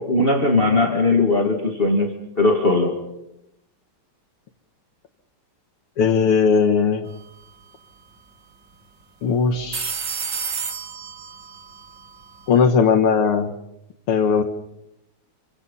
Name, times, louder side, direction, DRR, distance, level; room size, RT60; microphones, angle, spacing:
voice 1, 0.0-3.0, left 2 dB, 25° left, 2 dB, 2.3 m, -19 dB
voice 2, 6.0-7.1 9.2-9.9 12.5-13.5 14.1-14.4, left 6 dB, 85° left, 4 dB, 2.4 m, -18 dB
sound 1, 7.1-7.4 7.6-7.7 9.5-12.7, right 6 dB, 55° right, 2.9 m, -32 dB
28.0 x 25.0 x 5.6 m, 0.83 s
omnidirectional pair, 2.4 m